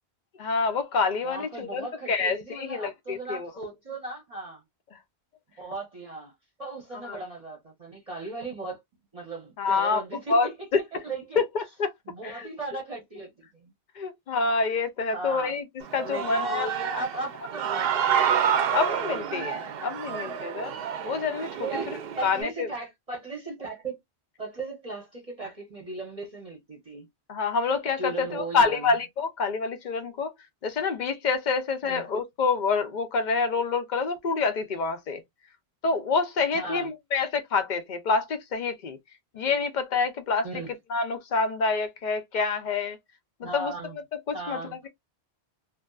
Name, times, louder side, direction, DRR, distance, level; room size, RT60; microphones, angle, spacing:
voice 1, 0.4-3.5 7.0-7.2 9.6-10.0 10.3-10.5 10.9-11.0 11.4-11.9 12.2-12.5 14.0-15.6 15.9-16.7 18.7-20.7 21.0-21.7 22.2-22.7 27.3-30.3 30.6-35.2 35.8-39.0 39.3-40.5 40.9-43.0 43.4-43.7 44.3-44.6, left 4 dB, 55° left, 0.6 m, -27 dB
voice 2, 1.2-4.6 5.6-6.3 6.6-8.8 9.1-10.5 10.9-11.4 12.1-13.7 15.1-15.5 16.0-18.1 20.1-20.4 21.6-24.0 24.4-27.1 28.0-28.9 31.8-32.0 36.5-36.9 40.4-40.7 43.4-44.0 44.3-44.8, right 3 dB, 35° right, 0.8 m, -37 dB
Human voice / Cheering, 15.8-22.4, right 8 dB, 65° right, 0.8 m, -28 dB
2.6 x 2.4 x 2.3 m
omnidirectional pair, 1.1 m